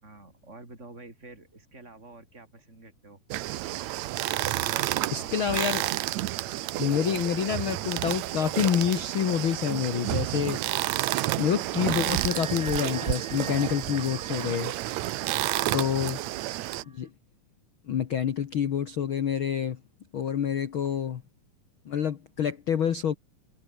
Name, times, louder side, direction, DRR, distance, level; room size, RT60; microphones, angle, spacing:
voice 1, 0.0-3.2 4.4-5.7 15.6-16.2, right 2 dB, 15° right, 7.8 m, -48 dB
sound 1, 3.3-16.8, right 16 dB, 90° right, 1.5 m, -30 dB
voice 2, 5.1-5.8 6.8-10.6 11.4-14.7 15.7-16.2 16.8-17.1 17.9-19.8 20.1-21.2 21.8-23.1, left 8 dB, 75° left, 1.1 m, -27 dB
sound 2, 12.1-17.1, right 4 dB, 35° right, 5.0 m, -46 dB
omnidirectional pair, 4.3 m